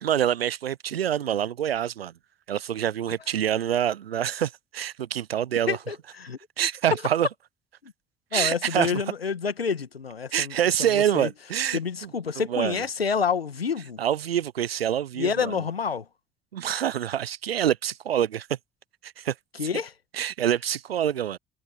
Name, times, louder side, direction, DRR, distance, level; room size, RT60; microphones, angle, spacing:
voice 1, 0.0-2.1 2.5-5.8 6.6-7.3 8.3-9.0 10.3-12.1 12.5-12.8 14.0-15.6 16.5-18.5 19.0-19.3 20.1-21.4, right 10 dB, 85° right, 0.7 m, -26 dB
voice 2, 5.7-6.4 7.8-7.9 8.3-11.3 11.7-14.0 15.2-16.1 19.6-19.9, left 6 dB, 90° left, 1.9 m, -28 dB
figure-of-eight pair, 45°, 29 cm